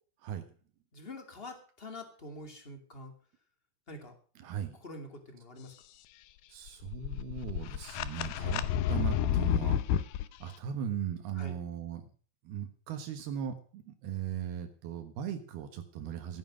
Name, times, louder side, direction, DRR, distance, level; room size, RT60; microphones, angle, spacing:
voice 1, 0.9-3.1 3.9-4.2 4.7-5.7 8.3-8.6 11.3-11.5, left 2 dB, 20° left, 6 dB, 2.1 m, -46 dB
voice 2, 4.4-4.8 6.5-8.6 8.9-9.8 10.4-12.1 12.4-16.4, right 8 dB, 80° right, 7 dB, 3.3 m, -38 dB
sound 1, 6.7-10.2, left 10 dB, 80° left, 2.7 m, -30 dB
15.5 x 9.5 x 6.4 m, 0.43 s
omnidirectional pair, 4.4 m